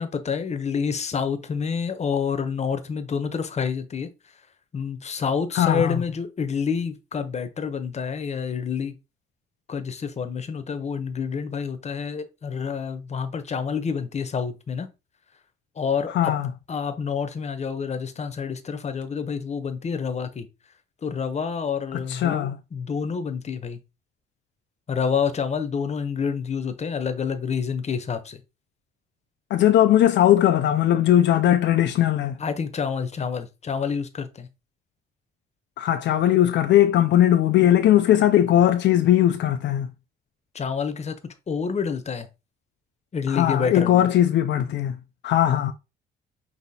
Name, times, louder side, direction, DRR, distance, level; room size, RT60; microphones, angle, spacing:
voice 1, 0.0-4.4 4.7-8.9 9.7-14.9 15.8-16.3 16.7-20.5 21.0-23.8 24.9-28.4 32.4-34.5 40.5-41.2 41.5-42.3 43.1-44.0, left 6 dB, 35° left, 0.8 m, -28 dB
voice 2, 5.5-6.0 16.1-16.5 21.9-22.6 29.5-32.4 35.8-39.9 43.3-45.0 45.2-45.7, left 11 dB, 65° left, 0.4 m, -19 dB
5.6 x 2.7 x 2.7 m
cardioid pair, 90°, 20 cm